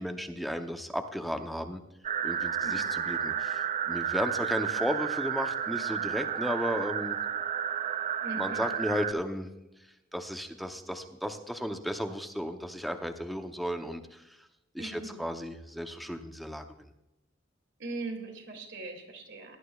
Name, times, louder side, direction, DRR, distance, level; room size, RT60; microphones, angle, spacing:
voice 1, 0.0-1.8 2.2-7.2 8.4-9.5 9.8-14.4 14.7-16.9, equal, ahead, 6 dB, 0.8 m, -34 dB
sound 1, 2.0-9.1, right 7 dB, 35° right, 0.4 m, -32 dB
voice 2, 8.2-8.6 14.8-15.2 17.8-19.6, right 2 dB, 65° right, 2 dB, 2.6 m, -40 dB
18.0 x 11.5 x 2.4 m, 0.93 s
head